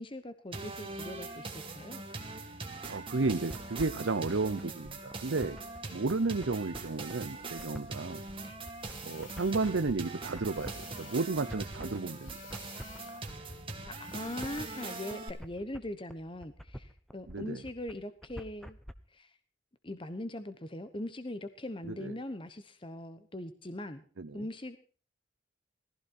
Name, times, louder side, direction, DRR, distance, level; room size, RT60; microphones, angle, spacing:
voice 1, 0.0-2.0 5.8-6.0 7.6-7.7 8.4-8.6 13.8-18.8 19.1-19.3 19.8-24.0 24.3-24.8, left 1 dB, 25° left, 10 dB, 1.1 m, -41 dB
sound 1, 0.5-15.3, right 3 dB, 25° right, 2.5 m, -42 dB
sound 2, 2.8-18.9, equal, ahead, 0.9 m, -47 dB
voice 2, 2.9-5.6 5.9-8.2 9.0-12.4 17.3-17.6 21.9-22.1 24.2-24.5, right 3 dB, 70° right, 10 dB, 0.7 m, -33 dB
sound 3, 8.7-9.8 10.5-11.6 12.2-13.4 14.0-15.2, left 7 dB, 75° left, 3.7 m, -54 dB
18.5 x 15.5 x 4.4 m, 0.39 s
head